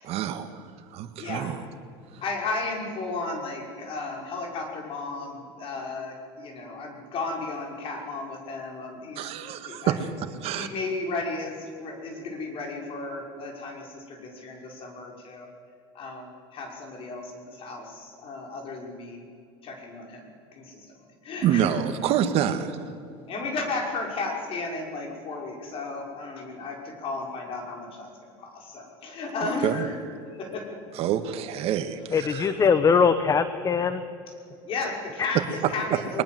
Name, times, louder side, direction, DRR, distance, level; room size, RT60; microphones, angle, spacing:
voice 1, 0.0-0.6 0.9-1.6 9.2-10.0 10.4-10.7 21.4-22.9 29.6-29.8 31.0-32.4, right 10 dB, 55° right, 9 dB, 1.8 m, -27 dB
voice 2, 1.2-1.6 2.2-10.0 10.5-15.5 15.9-19.2 19.6-21.7 23.3-30.0 30.3-30.7 34.6-36.2, left 3 dB, 45° left, 1 dB, 5.9 m, -34 dB
voice 3, 32.1-34.0 35.2-35.3, left 6 dB, 25° left, 12 dB, 1.0 m, -21 dB
22.0 x 20.5 x 7.9 m, 2.3 s
supercardioid pair, 105°, 13 cm